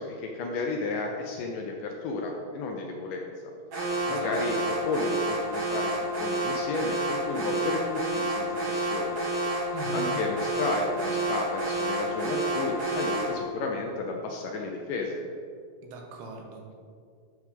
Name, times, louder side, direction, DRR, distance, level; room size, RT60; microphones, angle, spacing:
voice 1, 0.0-3.2 4.0-5.9 6.2-9.2 9.9-15.2, left 3 dB, 75° left, 1 dB, 2.0 m, -32 dB
Alarm, 3.7-13.4, right 1 dB, 50° right, 3.5 m, -29 dB
voice 2, 9.7-10.1 15.8-16.7, right 4 dB, 85° right, 2 dB, 2.9 m, -40 dB
11.5 x 6.2 x 3.6 m, 2.2 s
omnidirectional pair, 4.4 m